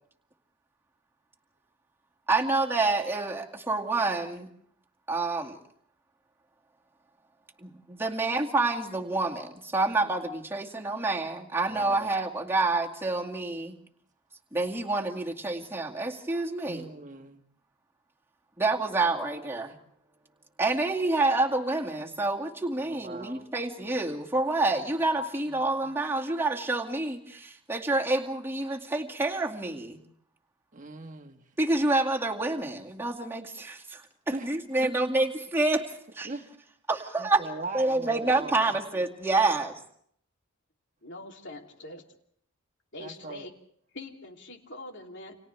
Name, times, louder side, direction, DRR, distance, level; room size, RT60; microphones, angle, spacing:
voice 1, 2.3-4.5 5.1-5.6 7.6-13.7 14.5-16.9 18.6-19.8 20.6-30.0 31.6-34.0 34.4-35.8 36.1-36.3 36.9-37.4 37.7-39.7, right 2 dB, 10° right, -2 dB, 2.2 m, -28 dB
voice 2, 11.7-12.1 16.7-17.4 22.8-23.4 25.5-25.6 30.7-31.4 34.3-34.5 34.8-34.9 36.2-36.4 37.2-38.8 43.0-43.5, right 2 dB, 35° right, 5 dB, 1.4 m, -40 dB
voice 3, 41.0-42.0 42.9-43.5 43.9-45.4, left 2 dB, 55° left, 2 dB, 3.1 m, -43 dB
30.0 x 27.0 x 3.4 m, 0.66 s
head